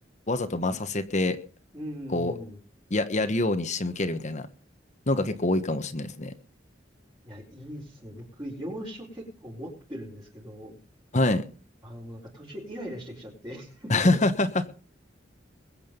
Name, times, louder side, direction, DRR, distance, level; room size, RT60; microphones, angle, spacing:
voice 1, 0.3-1.4 2.1-2.3 2.9-4.5 5.1-6.3 11.1-11.4 13.9-14.7, left 2 dB, 40° left, 10 dB, 1.2 m, -25 dB
voice 2, 1.7-2.6 7.2-10.8 11.8-14.2, equal, 20° right, -6 dB, 4.6 m, -40 dB
21.5 x 8.7 x 5.4 m, 0.37 s
head